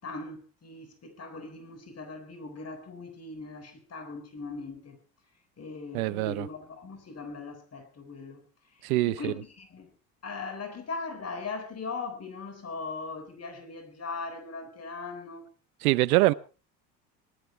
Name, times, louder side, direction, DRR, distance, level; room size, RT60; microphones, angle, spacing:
voice 1, 0.0-5.0 5.6-9.9 10.2-15.5, left 4 dB, 35° left, 4.1 m, -39 dB
voice 2, 5.9-6.5 8.8-9.3 15.8-16.3, right 19 dB, 75° right, 0.8 m, -24 dB
19.0 x 13.0 x 4.4 m
hypercardioid pair, 70°, 44 cm